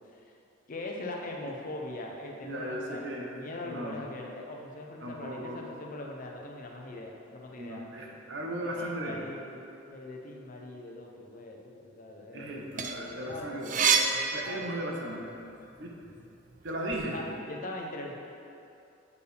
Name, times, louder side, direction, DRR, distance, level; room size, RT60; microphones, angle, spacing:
voice 1, 0.7-7.8 8.8-9.6 9.9-13.7 14.4-14.6 17.1-18.1, left 2 dB, 40° left, 0 dB, 0.6 m, -41 dB
voice 2, 2.4-4.0 5.0-5.6 7.6-9.2 12.3-15.3 15.8-16.1 16.6-17.2, right 1 dB, 60° right, -1 dB, 0.8 m, -37 dB
sound 1, 12.5-15.2 15.6-17.0, right 5 dB, 40° right, 0.3 m, -29 dB
8.1 x 4.6 x 3.4 m, 2.7 s
head